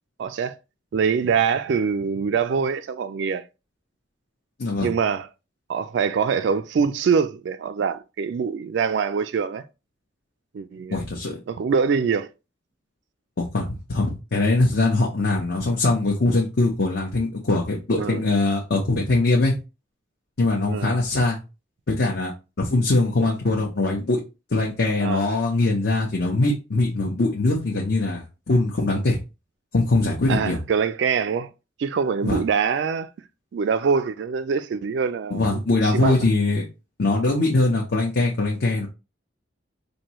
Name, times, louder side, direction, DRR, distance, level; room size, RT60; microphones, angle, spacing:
voice 1, 0.2-0.6 0.9-3.4 4.8-5.3 5.7-9.6 10.5-11.0 11.5-12.3 18.0-18.2 20.7-21.0 25.0-25.3 30.3-31.5 31.8-33.1 33.5-36.2, right 6 dB, 65° right, 0.3 m, -24 dB
voice 2, 4.6-4.9 10.9-11.4 13.4-19.5 20.4-21.4 21.9-22.3 22.6-24.2 24.5-29.2 29.7-30.6 32.2-32.4 35.3-36.6 37.0-38.9, left 2 dB, 55° left, 0.8 m, -22 dB
4.5 x 2.7 x 3.0 m
head